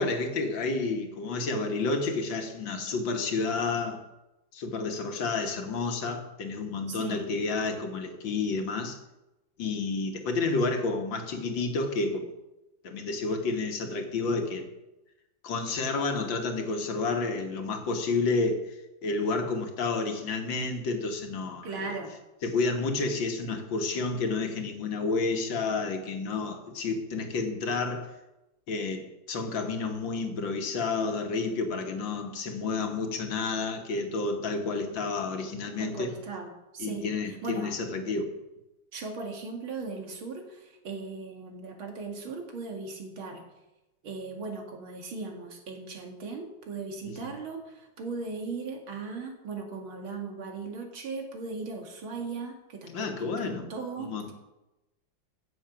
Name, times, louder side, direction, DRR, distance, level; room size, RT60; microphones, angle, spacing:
voice 1, 0.0-4.0 4.5-9.0 9.6-12.3 12.8-14.7 15.4-18.8 19.0-21.9 22.4-28.1 28.7-36.1 36.8-38.3 47.1-47.3 52.9-53.7 54.0-54.3, left 3 dB, 70° left, 2.1 m, -30 dB
voice 2, 6.9-7.3 21.6-22.1 35.8-37.1 37.4-37.7 38.9-43.4 44.0-54.3, right 4 dB, 90° right, 2.7 m, -38 dB
15.0 x 7.2 x 5.9 m
omnidirectional pair, 2.2 m